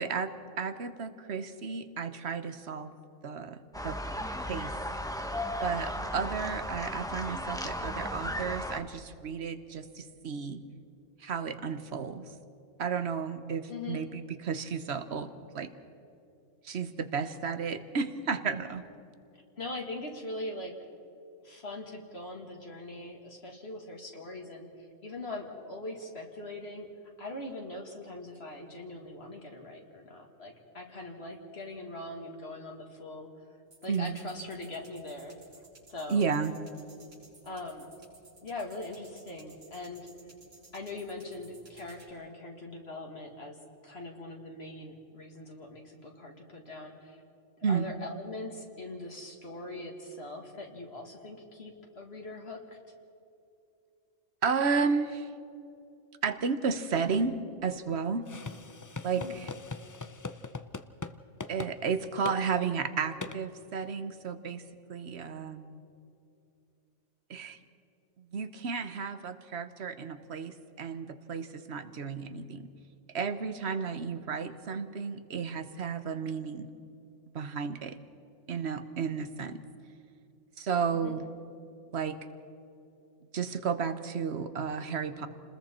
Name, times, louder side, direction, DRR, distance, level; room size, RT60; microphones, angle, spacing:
voice 1, 0.0-2.9 3.2-3.6 3.8-4.0 4.5-4.7 5.6-10.6 11.2-12.2 12.8-15.3 15.5-15.7 16.6-18.8 33.9-34.2 36.1-36.5 47.6-47.9 54.4-55.3 56.2-58.2 59.0-59.5 61.5-64.6 64.9-65.8 67.3-67.6 68.2-72.7 73.1-76.7 77.3-78.0 78.5-79.6 80.6-81.3 81.9-82.2 83.3-85.3, right 5 dB, 60° right, 11 dB, 1.3 m, -33 dB
sound 1, 3.7-8.8, equal, 5° left, 0.9 m, -35 dB
voice 2, 13.7-14.0 19.6-20.7 21.4-24.7 25.0-26.9 27.2-33.3 33.8-35.4 35.9-36.3 37.4-37.9 38.4-40.1 40.7-43.6 43.8-47.2 47.7-52.6 59.1-59.4 80.9-81.1, left 2 dB, 55° left, 1 dB, 2.2 m, -41 dB
sound 2, 33.7-42.1, right 2 dB, 75° right, 4.4 m, -57 dB
sound 3, 58.3-61.1 61.4-61.7 62.2-62.4 63.2-63.4, left 3 dB, 30° left, 0.3 m, -40 dB
29.5 x 20.5 x 4.4 m, 2.7 s
omnidirectional pair, 1.3 m